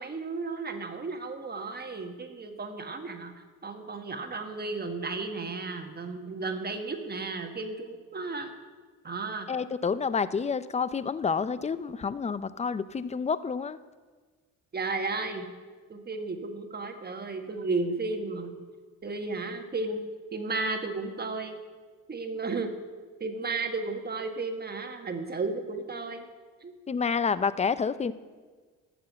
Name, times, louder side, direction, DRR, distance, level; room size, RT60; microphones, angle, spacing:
voice 1, 0.0-3.3 3.6-8.5 9.0-9.5 14.7-15.5 15.9-18.5 19.0-20.0 20.3-21.6 22.1-22.7 23.2-26.3 26.6-26.7, right 3 dB, 30° right, 5 dB, 1.5 m, -33 dB
voice 2, 9.5-13.8 26.9-28.1, left 5 dB, 20° left, 15 dB, 0.5 m, -29 dB
11.0 x 6.8 x 9.1 m, 1.4 s
cardioid pair, 90°, 30 cm